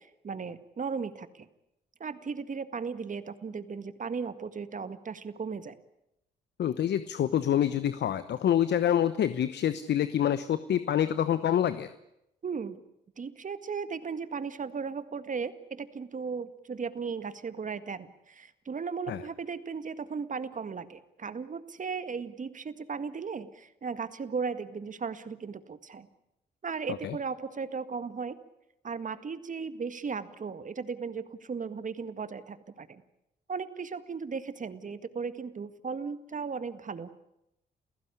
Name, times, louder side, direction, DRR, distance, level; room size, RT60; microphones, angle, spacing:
voice 1, 0.0-1.5 2.0-5.8 12.4-12.8 13.2-26.1 26.6-28.4 28.8-33.0 33.5-37.1, right 5 dB, 45° right, 12 dB, 1.8 m, -36 dB
voice 2, 6.6-11.9 19.1-19.2 27.0-27.1, left 10 dB, 70° left, 13 dB, 1.0 m, -26 dB
29.0 x 15.5 x 9.9 m, 0.84 s
supercardioid pair, 65°, 19 cm